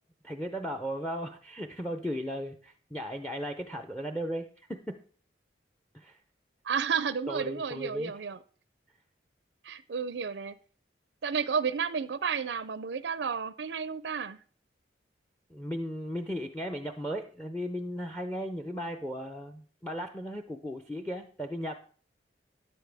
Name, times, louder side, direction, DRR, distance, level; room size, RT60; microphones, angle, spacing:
voice 1, 0.2-5.0 5.9-6.2 7.3-8.1 15.5-21.8, equal, 5° left, 7 dB, 0.5 m, -36 dB
voice 2, 6.7-8.4 9.6-10.5 11.2-14.4, right 6 dB, 70° right, 15 dB, 0.4 m, -32 dB
13.0 x 10.0 x 3.4 m, 0.43 s
head